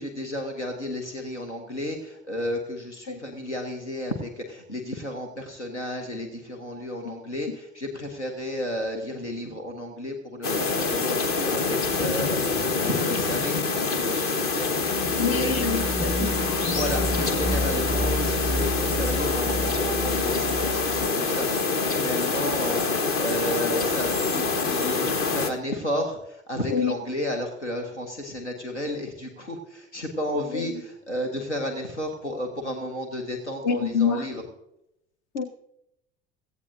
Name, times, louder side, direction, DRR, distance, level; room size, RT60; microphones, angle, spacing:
voice 1, 0.0-13.6 14.0-15.5 16.7-34.5, equal, 85° left, 4 dB, 1.4 m, -33 dB
sound 1, 10.4-25.5, left 4 dB, 40° left, 1.3 m, -26 dB
sound 2, 14.8-21.1, equal, 5° left, 1.1 m, -31 dB
voice 2, 15.2-16.3 26.7-27.0 30.5-30.7 33.6-34.3 35.3-35.4, left 6 dB, 60° left, 12 dB, 1.1 m, -26 dB
17.0 x 15.5 x 2.6 m, 0.83 s
figure-of-eight pair, 65°, 34 cm